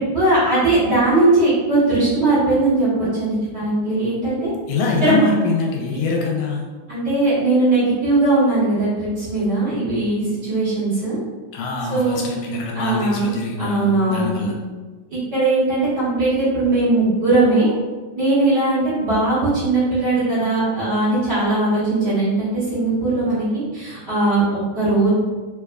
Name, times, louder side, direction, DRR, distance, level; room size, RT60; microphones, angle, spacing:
voice 1, 0.0-4.5 5.0-5.2 6.9-11.2 11.9-12.2 12.7-13.3 13.6-14.5 15.1-17.7 18.1-25.1, right 2 dB, 45° right, -13 dB, 1.5 m, -19 dB
voice 2, 4.7-6.7 11.5-14.5, left 3 dB, 85° left, -1 dB, 2.0 m, -24 dB
4.6 x 2.3 x 2.2 m, 1.3 s
omnidirectional pair, 3.4 m